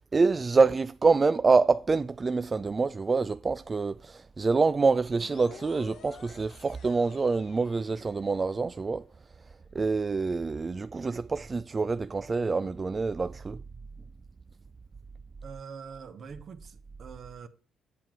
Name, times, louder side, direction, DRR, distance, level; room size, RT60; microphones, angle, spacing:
voice 1, 0.0-9.0 9.7-13.6, right 4 dB, 35° right, 0.3 m, -26 dB
sound 1, 5.0-8.5, left 8 dB, 65° left, 0.8 m, -51 dB
voice 2, 15.4-17.5, right 6 dB, 55° right, 1.2 m, -44 dB
8.3 x 7.5 x 4.6 m
supercardioid pair, 60°, 0 cm